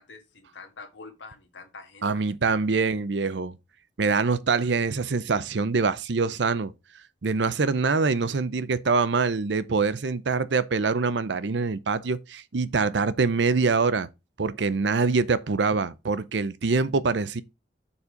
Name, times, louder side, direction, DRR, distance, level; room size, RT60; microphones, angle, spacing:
voice 1, 0.0-2.2, left 4 dB, 85° left, 1.6 m, -46 dB
voice 2, 2.0-3.6 4.0-6.7 7.2-14.1 14.4-17.4, right 4 dB, 75° right, 0.6 m, -24 dB
7.0 x 4.3 x 5.0 m
head